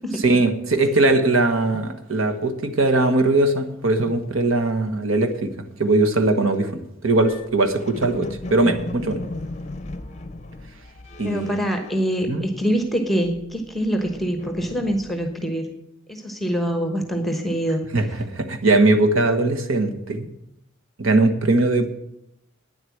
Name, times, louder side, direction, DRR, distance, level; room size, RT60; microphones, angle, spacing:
voice 1, 0.2-5.5 5.8-9.2 11.2-11.5 12.3-12.4 17.9-20.3 21.0-21.9, right 2 dB, 85° right, 8 dB, 1.3 m, -20 dB
sound 1, 7.2-12.8 13.1-15.4, left 2 dB, 35° left, 0.6 m, -37 dB
voice 2, 11.2-15.8 16.1-18.0, equal, ahead, 5 dB, 1.2 m, -25 dB
9.4 x 7.9 x 8.5 m, 0.82 s
head